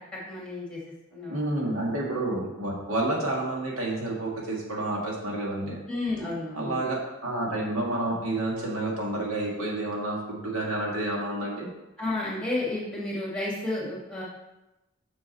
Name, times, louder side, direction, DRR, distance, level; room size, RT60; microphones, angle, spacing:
voice 1, 0.3-0.8 1.1-1.4 5.9-6.8 12.0-14.2, left 2 dB, 5° left, -5 dB, 2.2 m, -31 dB
voice 2, 1.3-5.8 6.5-11.7, right 2 dB, 85° right, -2 dB, 1.9 m, -29 dB
6.9 x 6.3 x 4.2 m, 0.98 s
head